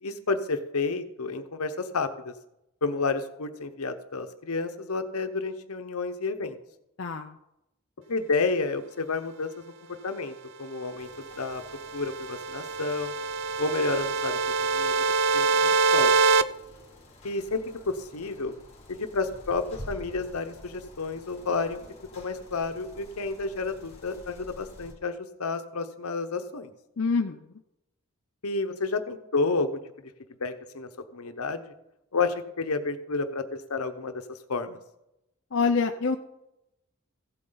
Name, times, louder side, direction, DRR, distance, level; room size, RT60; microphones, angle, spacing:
voice 1, 0.0-2.3 2.8-6.6 8.1-11.6 11.9-13.1 13.6-16.2 17.2-18.5 18.9-21.8 22.2-26.7 28.4-29.8 30.4-31.7 32.1-34.8, left 3 dB, 80° left, 9 dB, 1.0 m, -31 dB
voice 2, 7.0-7.4 27.0-27.4 35.5-36.2, left 4 dB, 55° left, 4 dB, 0.5 m, -26 dB
sound 1, 11.0-24.9, left 1 dB, 30° left, 2.3 m, -49 dB
sound 2, 11.5-16.4, right 4 dB, 55° right, 0.4 m, -25 dB
15.5 x 7.8 x 3.9 m, 0.87 s
head